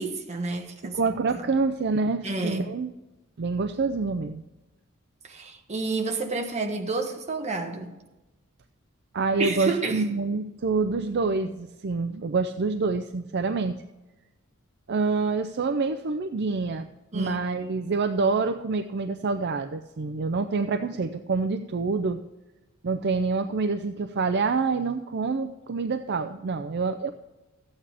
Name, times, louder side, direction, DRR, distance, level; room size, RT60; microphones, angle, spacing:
voice 1, 0.0-1.1 2.2-2.7 5.2-7.9 9.4-10.0 17.1-17.4, right 3 dB, 30° right, 1.3 m, -30 dB
voice 2, 0.9-2.9 3.4-4.4 9.1-13.8 14.9-22.2 22.8-27.1, right 4 dB, 55° right, 0.5 m, -27 dB
14.0 x 8.8 x 3.5 m
head